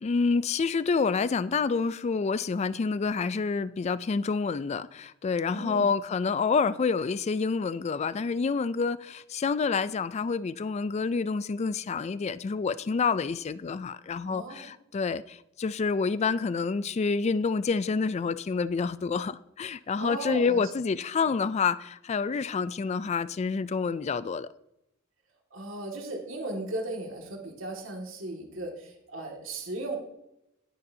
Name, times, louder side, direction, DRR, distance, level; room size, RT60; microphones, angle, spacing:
voice 1, 0.0-24.5, left 5 dB, 35° left, 0.3 m, -28 dB
voice 2, 5.5-5.9 14.2-14.7 20.0-20.6 25.5-30.0, right 2 dB, 80° right, 2.1 m, -36 dB
19.5 x 6.7 x 2.8 m
head